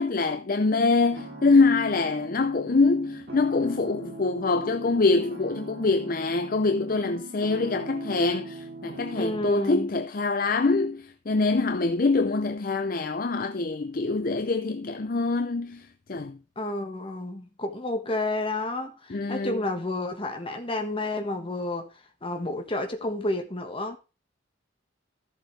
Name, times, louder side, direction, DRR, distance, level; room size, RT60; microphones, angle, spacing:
voice 1, 0.0-15.8 16.1-16.4 19.1-19.6, left 3 dB, 45° left, 0.6 m, -24 dB
sound 1, 1.1-9.5, right 2 dB, 50° right, 3.1 m, -41 dB
voice 2, 9.2-9.9 16.6-21.9 22.2-24.0, left 2 dB, 25° left, 1.5 m, -30 dB
14.0 x 7.1 x 3.3 m
head